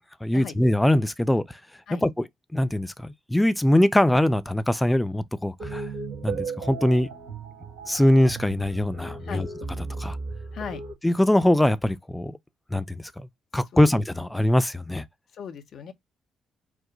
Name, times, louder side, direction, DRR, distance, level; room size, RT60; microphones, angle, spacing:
voice 1, 0.2-1.6 2.0-2.2 2.5-5.9 6.2-7.1 7.9-9.5 10.0-10.2 11.0-12.4 12.7-13.1 13.5-15.0, left 1 dB, 10° left, 0.6 m, -22 dB
sound 1, 5.6-10.9, right 4 dB, 70° right, 2.0 m, -35 dB
voice 2, 15.3-15.9, left 7 dB, 60° left, 0.8 m, -37 dB
4.8 x 2.1 x 3.8 m
hypercardioid pair, 45°, 0 cm